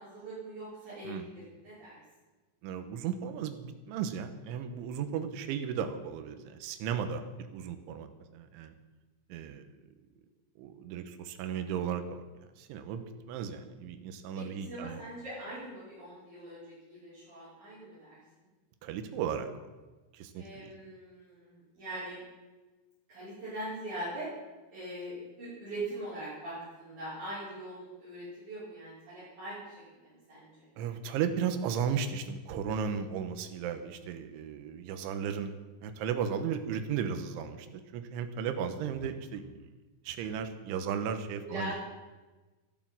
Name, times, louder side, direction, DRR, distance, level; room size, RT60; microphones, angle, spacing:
voice 1, 0.0-2.0 14.4-18.5 20.3-22.2 23.1-24.3 24.7-30.7 41.4-41.8, right 1 dB, 40° right, -10 dB, 7.2 m, -42 dB
voice 2, 2.6-8.7 9.3-9.7 10.6-12.2 12.6-15.0 18.8-19.5 20.1-20.7 30.8-35.5 35.8-39.5 40.0-41.8, right 7 dB, 80° right, 8 dB, 3.5 m, -35 dB
14.5 x 11.5 x 7.6 m, 1.2 s
omnidirectional pair, 5.5 m